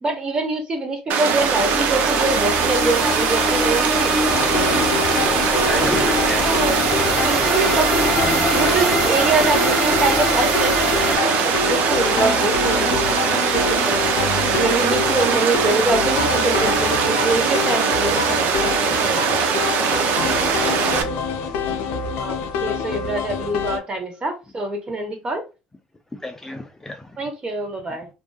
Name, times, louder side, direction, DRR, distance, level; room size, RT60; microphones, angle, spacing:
voice 1, 0.0-4.1 5.2-6.1 6.4-6.7 7.2-8.1 8.5-10.7 11.1-14.0 14.6-19.4 22.2-25.4 27.2-28.1, right 2 dB, 30° right, 1.1 m, -25 dB
Water, 1.1-21.0, right 6 dB, 60° right, 0.5 m, -21 dB
sound 1, 1.3-11.2, left 1 dB, ahead, 0.8 m, -25 dB
sound 2, 4.3-23.8, left 5 dB, 75° left, 0.4 m, -26 dB
voice 2, 5.7-6.5 15.3-15.4 19.9-20.1 21.7-21.9 26.1-27.2 27.9-28.0, left 1 dB, 15° left, 0.4 m, -32 dB
2.5 x 2.3 x 2.3 m
supercardioid pair, 80°, 3 cm